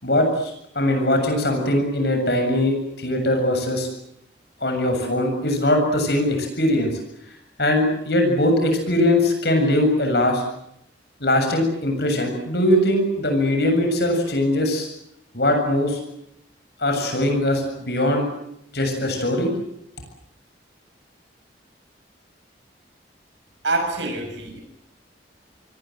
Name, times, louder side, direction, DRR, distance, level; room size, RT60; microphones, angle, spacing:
voice 1, 0.0-3.9 4.6-6.9 7.6-10.4 11.2-14.9 15.3-16.0 16.8-18.3 18.7-19.5, left 1 dB, 60° left, 4 dB, 7.4 m, -21 dB
voice 2, 23.6-24.6, right 2 dB, 85° right, 4 dB, 7.0 m, -25 dB
27.5 x 22.0 x 7.8 m, 0.79 s
head